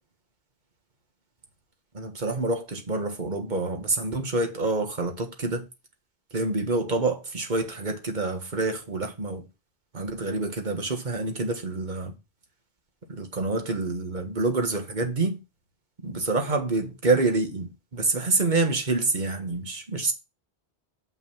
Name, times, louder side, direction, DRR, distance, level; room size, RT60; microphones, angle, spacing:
voice 1, 1.9-5.7 6.3-9.5 9.9-12.1 13.1-15.4 16.0-20.1, right 3 dB, 45° right, 1.6 m, -27 dB
6.7 x 6.1 x 5.4 m
omnidirectional pair, 1.0 m